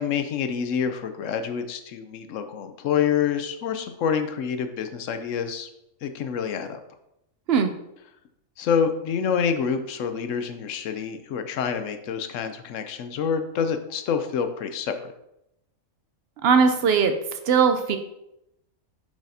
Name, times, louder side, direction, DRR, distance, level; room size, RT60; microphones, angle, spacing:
voice 1, 0.0-5.7 6.0-6.8 8.6-15.1, left 7 dB, 70° left, 8 dB, 0.9 m, -27 dB
voice 2, 16.4-17.1 17.4-18.0, right 6 dB, 65° right, 7 dB, 0.7 m, -19 dB
7.3 x 4.8 x 2.7 m, 0.84 s
omnidirectional pair, 1.5 m